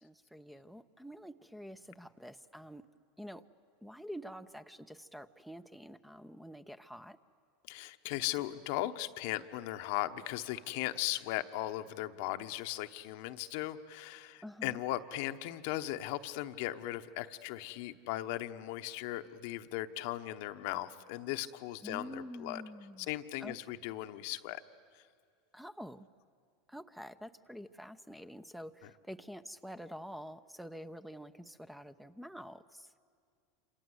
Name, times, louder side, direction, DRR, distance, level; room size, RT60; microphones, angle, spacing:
voice 1, 0.0-2.9 3.2-3.4 3.8-7.2 14.4-14.8 21.8-23.1 23.4-23.6 25.5-26.1 26.7-32.9, equal, ahead, 11 dB, 0.8 m, -47 dB
voice 2, 7.7-22.6 23.1-24.6 24.9-25.0, left 15 dB, 65° left, 8 dB, 1.0 m, -38 dB
27.5 x 26.5 x 8.0 m, 2.2 s
hypercardioid pair, 95°, 0 cm